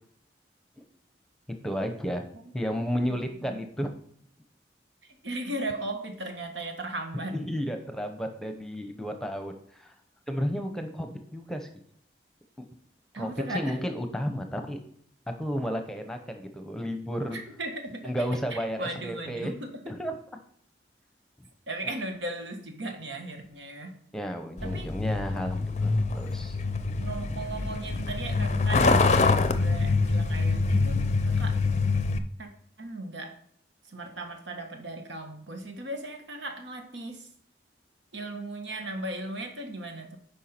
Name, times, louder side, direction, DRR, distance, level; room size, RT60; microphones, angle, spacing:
voice 1, 1.6-2.2 2.5-3.9 7.3-9.9 10.3-11.7 13.2-14.8 15.4-17.4 18.0-19.5 19.9-20.1 21.4-21.5 24.1-26.6, equal, 5° left, 6 dB, 0.8 m, -32 dB
voice 2, 2.7-3.9 5.0-7.4 13.1-13.8 17.3-18.1 18.5-19.7 21.7-23.9 24.6-24.9 27.0-29.1 29.6-31.6 32.4-32.5 32.8-33.4 33.9-37.3 38.1-40.2, right 2 dB, 85° right, 4 dB, 1.5 m, -37 dB
Truck, 24.6-32.2, left 3 dB, 35° left, 0.5 m, -25 dB
9.3 x 5.5 x 4.4 m, 0.65 s
head